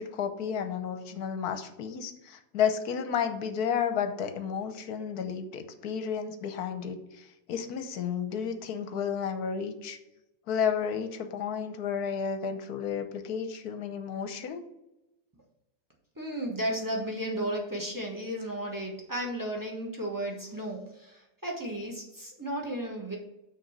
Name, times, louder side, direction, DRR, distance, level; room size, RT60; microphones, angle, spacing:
voice 1, 0.0-10.0 10.5-14.6, left 7 dB, 65° left, 8 dB, 1.2 m, -32 dB
voice 2, 16.2-23.2, right 1 dB, 15° right, -1 dB, 1.2 m, -34 dB
6.3 x 4.5 x 6.6 m, 0.91 s
omnidirectional pair, 1.9 m